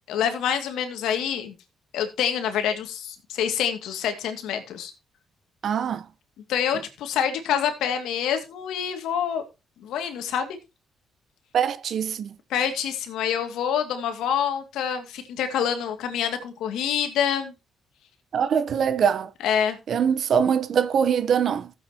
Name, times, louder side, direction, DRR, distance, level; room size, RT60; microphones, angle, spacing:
voice 1, 0.1-1.5 1.9-4.9 6.5-9.4 9.8-10.6 12.5-17.5 19.4-19.8, left 8 dB, 85° left, 2.4 m, -26 dB
voice 2, 5.6-6.1 11.5-12.4 18.3-19.3 19.9-21.7, right 7 dB, 60° right, 1.0 m, -23 dB
15.5 x 8.3 x 3.0 m
cardioid pair, 90°, 0 cm